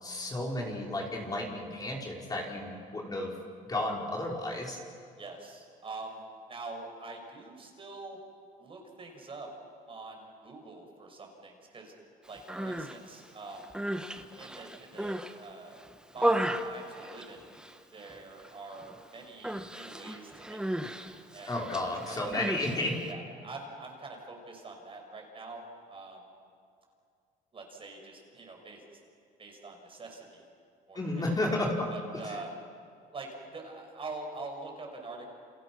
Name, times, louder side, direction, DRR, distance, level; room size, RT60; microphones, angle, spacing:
voice 1, 0.0-3.3 3.7-4.8 21.5-22.9 30.9-31.9 32.2-32.4, left 1 dB, 20° left, -2 dB, 4.9 m, -32 dB
voice 2, 5.2-6.2 6.5-8.2 8.6-9.5 9.9-11.9 12.3-13.7 14.3-17.5 17.9-21.0 21.3-21.5 21.8-22.2 23.1-26.2 27.5-28.8 29.4-30.4 30.9-31.3 31.9-32.5 33.1-35.3, right 3 dB, 30° right, 2 dB, 5.9 m, -45 dB
Human voice, 12.4-13.0 13.5-15.4 15.8-17.8 18.0-18.5 18.7-19.0 19.4-23.1, right 1 dB, 5° right, 1.3 m, -34 dB
29.0 x 29.0 x 6.2 m, 2.3 s
cardioid pair, 110°, 17 cm